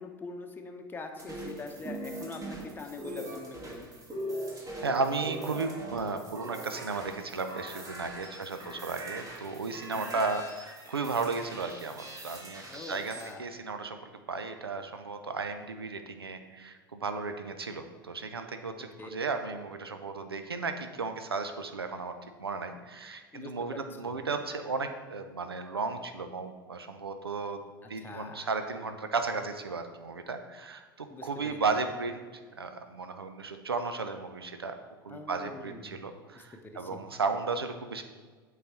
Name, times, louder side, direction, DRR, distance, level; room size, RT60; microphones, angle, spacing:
voice 1, 0.0-3.9 8.6-8.8 9.9-10.2 12.6-13.4 19.0-19.1 23.3-23.8 24.1-24.3 28.0-28.5 31.1-31.6 35.1-36.0 36.3-37.0, left 3 dB, 15° left, 4 dB, 0.8 m, -44 dB
sound 1, 1.2-13.3, right 1 dB, 30° right, 1.6 m, -41 dB
voice 2, 4.8-27.6 27.9-34.8 35.0-38.0, right 4 dB, 90° right, 7 dB, 0.5 m, -34 dB
8.1 x 4.0 x 4.4 m, 1.5 s
figure-of-eight pair, 80°, 12 cm